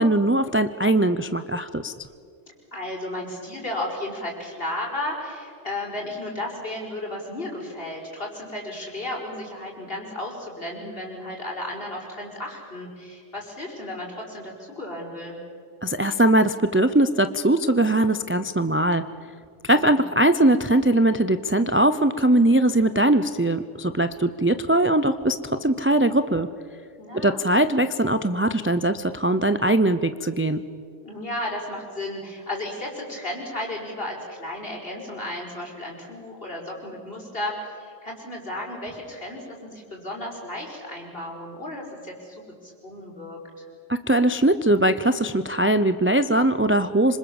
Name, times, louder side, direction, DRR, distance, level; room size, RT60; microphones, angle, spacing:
voice 1, 0.0-1.9 15.8-19.0 19.6-26.5 27.2-30.6 43.9-47.2, right 1 dB, 15° right, 10 dB, 0.4 m, -21 dB
voice 2, 2.7-15.4 19.7-20.1 27.0-27.7 31.0-43.4, left 1 dB, 45° left, -1 dB, 5.6 m, -34 dB
26.5 x 25.5 x 7.1 m, 2.2 s
omnidirectional pair, 1.3 m